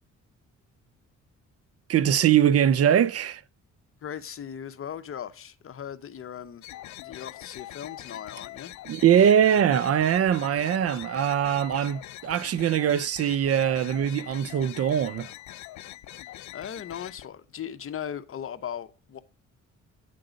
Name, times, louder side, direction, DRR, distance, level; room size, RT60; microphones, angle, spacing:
voice 1, 1.9-3.4 8.9-15.3, right 9 dB, 50° right, 0.5 m, -22 dB
voice 2, 4.0-6.6 7.0-8.7 16.5-19.2, left 9 dB, 45° left, 0.8 m, -38 dB
sound 1, 6.6-17.3, left 15 dB, 70° left, 0.5 m, -43 dB
9.1 x 3.8 x 5.1 m
cardioid pair, 90°, 30 cm